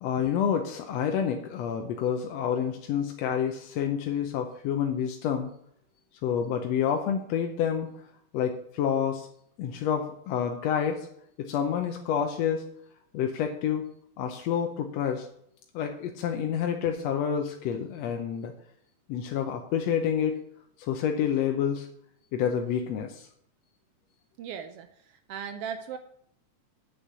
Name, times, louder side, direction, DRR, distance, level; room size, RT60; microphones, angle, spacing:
voice 1, 0.0-5.5 6.2-7.9 8.3-9.3 9.6-11.1 11.4-12.7 13.1-13.9 14.2-15.3 15.7-18.5 19.1-20.4 20.8-21.9 22.3-23.3, left 8 dB, 70° left, 4 dB, 1.7 m, -28 dB
voice 2, 24.4-26.0, right 7 dB, 85° right, 8 dB, 1.3 m, -38 dB
8.1 x 6.4 x 6.8 m, 0.69 s
omnidirectional pair, 3.5 m